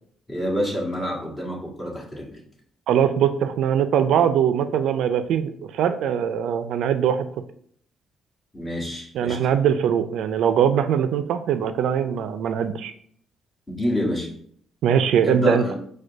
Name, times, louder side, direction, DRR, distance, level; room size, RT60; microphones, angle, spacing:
voice 1, 0.3-2.4 8.5-9.4 13.7-14.3 15.2-15.7, equal, 15° left, -4 dB, 1.7 m, -27 dB
voice 2, 2.9-7.3 9.1-12.9 14.8-15.6, right 8 dB, 80° right, 10 dB, 0.3 m, -21 dB
4.9 x 2.2 x 4.6 m, 0.63 s
cardioid pair, 90°, 0 cm